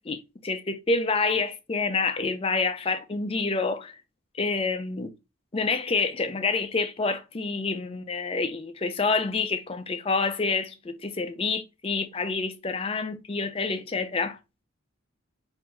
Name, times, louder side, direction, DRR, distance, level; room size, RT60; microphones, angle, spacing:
voice 1, 0.0-4.0 4.3-5.1 5.5-14.4, left 4 dB, 25° left, 0.4 m, -28 dB
3.7 x 2.6 x 4.4 m
head